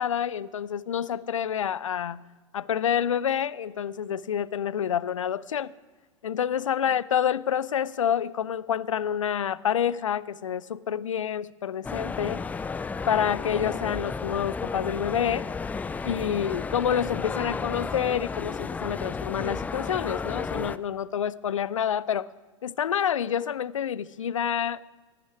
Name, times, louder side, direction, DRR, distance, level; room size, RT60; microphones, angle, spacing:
voice 1, 0.0-2.2 2.5-5.7 6.2-12.4 13.1-15.5 16.0-22.3 22.6-24.9, left 9 dB, 70° left, 0.6 m, -28 dB
sound 1, 11.8-20.8, left 4 dB, 10° left, 0.4 m, -33 dB
17.5 x 6.4 x 9.9 m
figure-of-eight pair, 95°, 17 cm